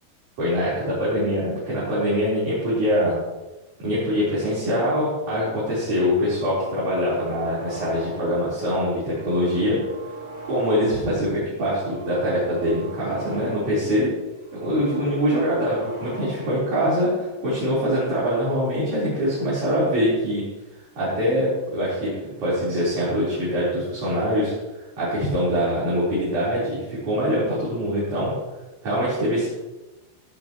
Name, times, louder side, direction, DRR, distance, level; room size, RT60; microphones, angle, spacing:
voice 1, 0.4-3.1 3.8-9.8 10.4-14.1 14.6-20.4 21.0-22.1 22.4-24.5 25.0-28.3 28.8-29.5, equal, 45° right, -10 dB, 5.6 m, -23 dB
sound 1, 6.2-8.5 8.9-11.2 11.6-13.9 14.3-16.7, right 2 dB, 25° right, 0.8 m, -40 dB
17.5 x 11.0 x 3.2 m, 1.1 s
omnidirectional pair, 5.0 m